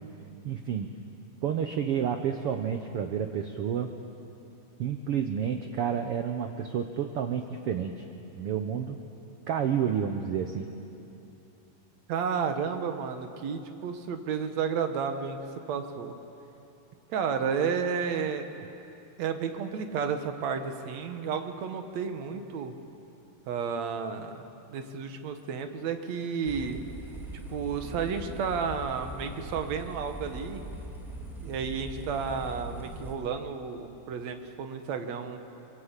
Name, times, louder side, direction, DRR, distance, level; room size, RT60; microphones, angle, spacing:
voice 1, 0.4-0.9 1.4-3.9 4.8-8.0 8.4-9.0 9.5-10.7, right 8 dB, 80° right, 6 dB, 1.3 m, -30 dB
voice 2, 12.1-15.4 15.7-16.2 17.1-18.6 19.2-22.8 23.5-24.4 24.7-26.8 27.5-30.6 31.4-35.4, right 6 dB, 60° right, 7 dB, 2.3 m, -32 dB
sound 1, 26.4-33.1, right 1 dB, ahead, 2.2 m, -41 dB
24.0 x 23.0 x 8.3 m, 2.9 s
omnidirectional pair, 3.9 m